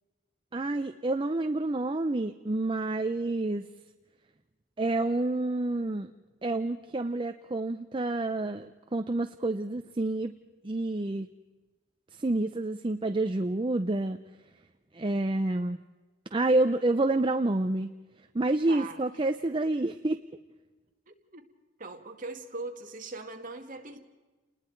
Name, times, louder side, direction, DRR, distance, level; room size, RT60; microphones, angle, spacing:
voice 1, 0.5-3.7 4.8-6.1 6.4-10.3 10.6-11.3 12.2-14.2 14.9-15.8 16.3-17.9 18.3-20.2, right 2 dB, 25° right, 8 dB, 0.5 m, -28 dB
voice 2, 18.7-19.2 21.1-21.4 21.8-24.0, right 3 dB, 45° right, 3 dB, 2.0 m, -41 dB
29.5 x 20.0 x 4.6 m, 1.2 s
head